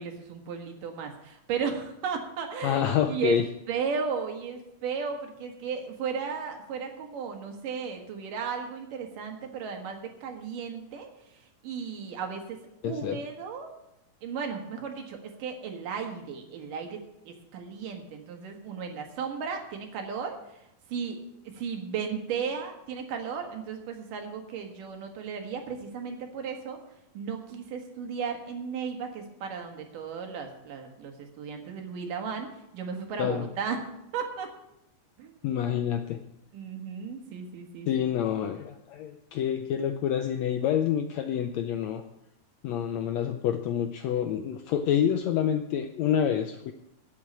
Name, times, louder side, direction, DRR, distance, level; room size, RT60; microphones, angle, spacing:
voice 1, 0.0-3.4 3.7-13.7 14.2-20.6 20.9-21.2 21.4-26.8 27.1-34.5 35.2-35.3 36.5-37.9, right 6 dB, 80° right, 3 dB, 3.2 m, -35 dB
voice 2, 2.6-3.5 12.8-13.2 33.2-33.5 35.4-36.2 37.9-42.0 42.6-46.7, left 9 dB, 80° left, 7 dB, 1.6 m, -27 dB
9.2 x 8.2 x 8.8 m, 0.84 s
omnidirectional pair, 3.8 m